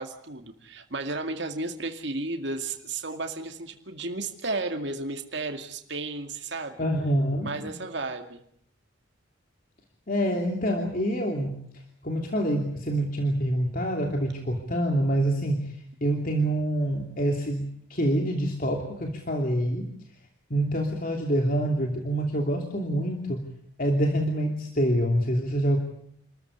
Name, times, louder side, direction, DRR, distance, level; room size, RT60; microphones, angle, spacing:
voice 1, 0.0-6.8 7.4-8.4, right 3 dB, 60° right, 5 dB, 2.3 m, -33 dB
voice 2, 6.8-7.7 10.1-11.6 12.0-15.7 16.0-19.9 20.5-23.5 23.8-25.8, right 1 dB, 45° left, 2 dB, 2.8 m, -26 dB
27.5 x 14.0 x 9.9 m, 0.69 s
head